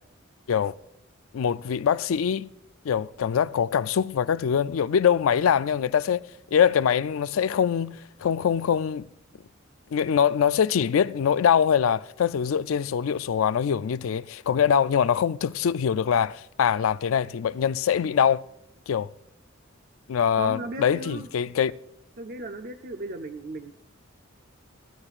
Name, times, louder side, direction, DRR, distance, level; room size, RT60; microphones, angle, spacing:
voice 1, 1.3-2.5 2.8-6.2 6.5-9.1 9.9-18.4 18.9-19.1 20.1-21.7, left 8 dB, 80° left, 0.4 m, -23 dB
voice 2, 20.4-21.3 22.2-23.7, right 2 dB, 50° right, 0.6 m, -36 dB
24.5 x 11.5 x 2.4 m
head